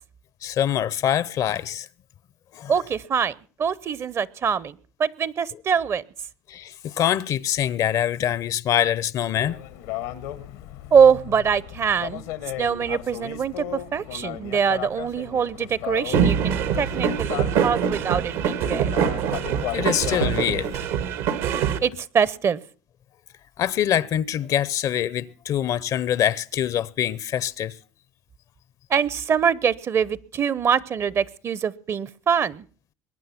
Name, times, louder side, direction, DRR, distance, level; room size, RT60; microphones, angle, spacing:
voice 1, 0.4-1.9 2.5-2.7 6.5-9.6 19.7-20.7 23.6-27.8, left 10 dB, 55° left, 0.7 m, -24 dB
voice 2, 2.7-6.0 10.9-12.2 12.6-18.9 21.8-22.6 28.9-32.6, right 7 dB, 40° right, 0.7 m, -23 dB
sound 1, 9.3-20.9, left 13 dB, 85° left, 1.4 m, -36 dB
sound 2, 16.1-21.8, right 8 dB, 80° right, 1.7 m, -24 dB
22.0 x 9.4 x 5.8 m
supercardioid pair, 90°, 7 cm